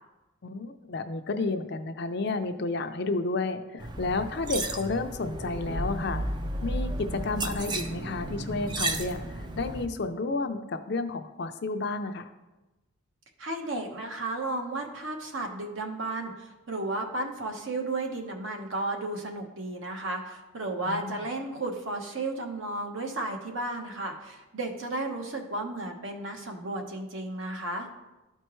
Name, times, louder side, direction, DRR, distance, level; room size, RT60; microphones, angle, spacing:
voice 1, 0.4-6.2 6.6-12.3 20.9-21.1, left 3 dB, 55° left, 8 dB, 0.5 m, -31 dB
sound 1, 3.8-9.9, right 1 dB, 20° right, 0.4 m, -33 dB
sound 2, 4.7-8.4, left 2 dB, 45° right, 1.2 m, -50 dB
voice 2, 13.4-27.9, right 2 dB, 70° right, 2 dB, 1.1 m, -33 dB
13.0 x 4.4 x 3.1 m, 1.1 s
head